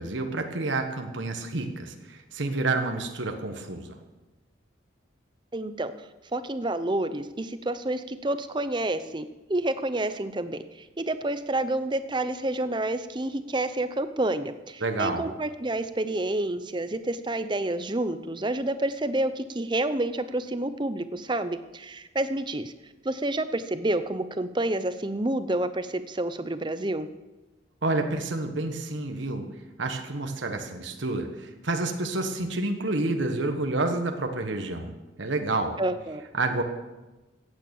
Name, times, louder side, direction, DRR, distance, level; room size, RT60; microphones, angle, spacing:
voice 1, 0.0-4.0 14.8-15.3 27.8-29.5 29.8-35.8 36.4-36.6, right 2 dB, 75° right, 5 dB, 1.4 m, -29 dB
voice 2, 5.5-5.9 6.3-22.7 23.0-27.1 35.8-36.2, right 1 dB, 25° right, 12 dB, 0.7 m, -29 dB
15.5 x 9.0 x 7.1 m, 1.1 s
head